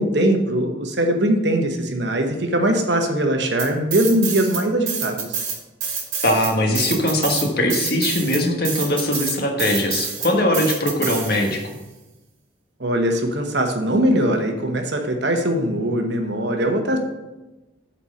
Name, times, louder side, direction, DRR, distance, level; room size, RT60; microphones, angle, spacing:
voice 1, 0.0-5.4 12.8-17.0, right 1 dB, 60° right, 4 dB, 1.1 m, -21 dB
sound 1, 3.6-4.6 4.9-11.7, right 6 dB, 90° right, 1.9 m, -27 dB
voice 2, 6.2-11.7, left 1 dB, 50° left, 2 dB, 1.4 m, -21 dB
8.3 x 4.4 x 6.5 m, 1.1 s
head